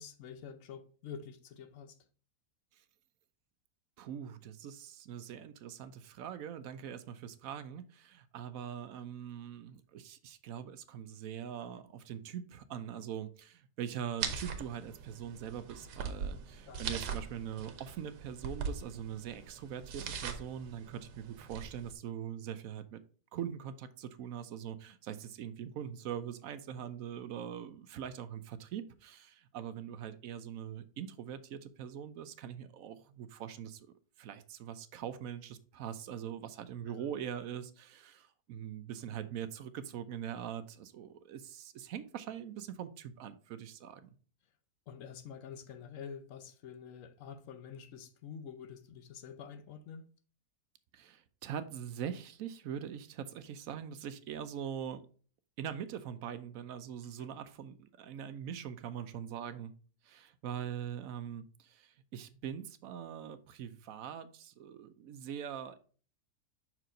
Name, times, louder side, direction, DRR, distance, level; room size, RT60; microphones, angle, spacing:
voice 1, 0.0-2.0 16.7-16.8 36.9-37.0 44.9-50.0, left 7 dB, 60° left, 1.0 m, -47 dB
voice 2, 4.0-23.0 23.3-44.1 50.9-55.0 55.6-59.7 60.0-65.8, right 9 dB, 70° right, 0.9 m, -42 dB
sound 1, 14.2-21.9, right 6 dB, 90° right, 1.4 m, -41 dB
5.9 x 4.6 x 3.8 m
omnidirectional pair, 1.7 m